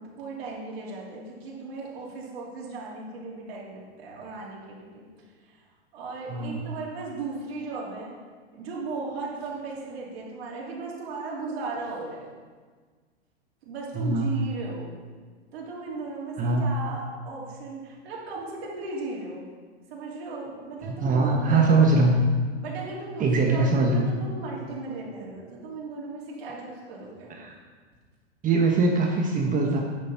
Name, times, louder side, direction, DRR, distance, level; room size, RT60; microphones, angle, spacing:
voice 1, 0.0-5.0 5.5-5.6 5.9-8.1 8.5-12.2 13.6-14.9 15.5-19.4 19.9-21.8 22.6-27.4, right 3 dB, 65° right, -4 dB, 3.4 m, -36 dB
voice 2, 13.9-14.3 16.4-16.6 20.8-22.2 23.2-24.0 27.3-27.5 28.4-29.8, right 3 dB, 25° right, 0 dB, 1.3 m, -22 dB
9.7 x 7.4 x 5.8 m, 1.5 s
hypercardioid pair, 120°, 33 cm